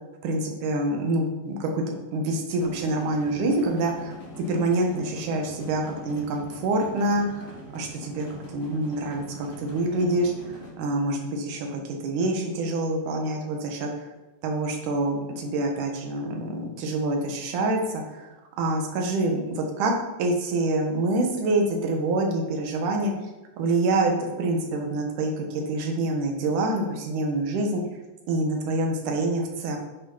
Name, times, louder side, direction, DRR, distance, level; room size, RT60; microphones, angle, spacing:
voice 1, 0.2-1.8 2.1-7.5 7.7-10.3 10.8-13.9 14.4-18.3 18.6-19.9 20.2-23.1 23.6-24.1 24.4-27.8 28.3-29.8, right 2 dB, 80° right, 2 dB, 2.8 m, -26 dB
sound 1, 2.6-10.7, equal, 35° left, 2.2 m, -42 dB
8.4 x 5.8 x 5.5 m, 1.1 s
omnidirectional pair, 3.5 m